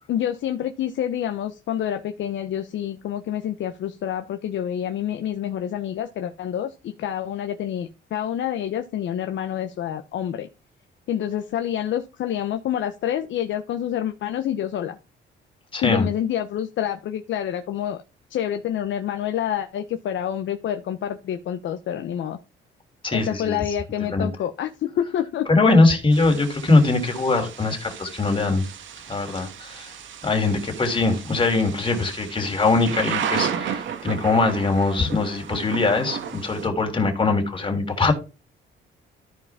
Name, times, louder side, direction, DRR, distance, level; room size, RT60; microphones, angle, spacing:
voice 1, 0.1-10.5 11.1-15.0 15.8-18.0 18.3-22.4 23.1-25.5, left 10 dB, 70° left, 0.9 m, -27 dB
voice 2, 15.7-16.1 23.0-23.6 24.1-24.3 25.5-28.6 29.1-29.9 30.2-38.1, left 3 dB, 25° left, 3.2 m, -21 dB
Thunder / Rain, 26.1-36.7, right 8 dB, 75° right, 1.4 m, -34 dB
13.5 x 4.7 x 3.6 m
cardioid pair, 90°, 20 cm